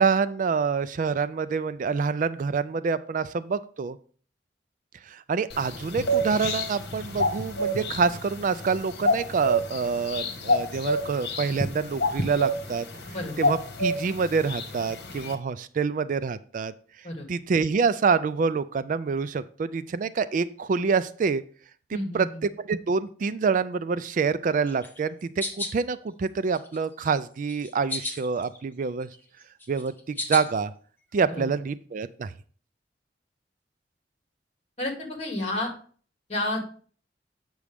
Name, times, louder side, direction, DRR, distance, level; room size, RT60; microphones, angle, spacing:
voice 1, 0.0-4.0 5.1-12.9 13.4-16.7 17.3-21.4 21.9-29.1 29.7-30.7 31.1-32.3, right 5 dB, 50° right, 15 dB, 0.3 m, -26 dB
sound 1, 5.5-15.3, equal, 65° left, 1.3 m, -29 dB
voice 2, 21.9-22.3 31.3-31.4 34.8-35.7 36.3-36.6, left 1 dB, 40° left, 2 dB, 2.2 m, -30 dB
sound 2, 24.7-25.8 26.3-27.1 27.5-28.6 28.9-30.6, left 2 dB, 10° left, 1.1 m, -35 dB
8.3 x 6.2 x 3.4 m, 0.44 s
head